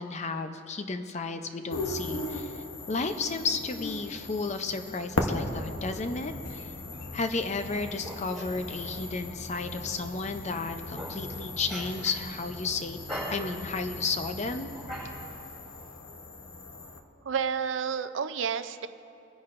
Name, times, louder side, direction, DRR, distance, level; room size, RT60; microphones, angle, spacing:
voice 1, 0.0-6.7 7.1-13.0 13.3-14.7, left 4 dB, 35° left, 8 dB, 0.6 m, -33 dB
sound 1, 1.7-17.0, left 2 dB, 75° left, 0.9 m, -38 dB
sound 2, 7.6-9.2 9.5-9.6 10.1-10.2 10.7-11.4 11.7-12.6 13.1-14.1 14.7-15.5, equal, ahead, 3.1 m, -41 dB
voice 2, 17.2-18.9, right 6 dB, 65° right, 11 dB, 0.5 m, -30 dB
24.0 x 10.0 x 2.5 m, 2.7 s
head